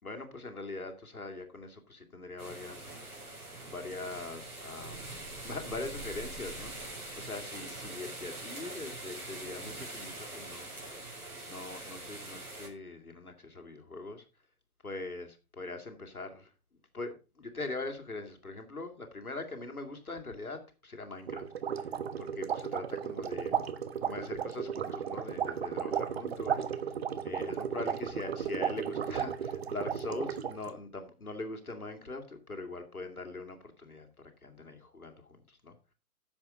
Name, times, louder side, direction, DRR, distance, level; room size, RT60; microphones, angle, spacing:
voice 1, 0.0-2.9 3.6-10.7 11.4-14.2 14.8-16.5 16.9-21.4 21.7-23.7 24.0-27.0 27.2-34.1 34.4-35.8, left 2 dB, 75° left, 6 dB, 2.6 m, -42 dB
sound 1, 2.4-12.7, right 2 dB, 80° right, 4.4 m, -43 dB
sound 2, 21.3-30.7, right 8 dB, 45° right, 1.2 m, -34 dB
10.5 x 7.3 x 5.2 m, 0.32 s
figure-of-eight pair, 130°, 44 cm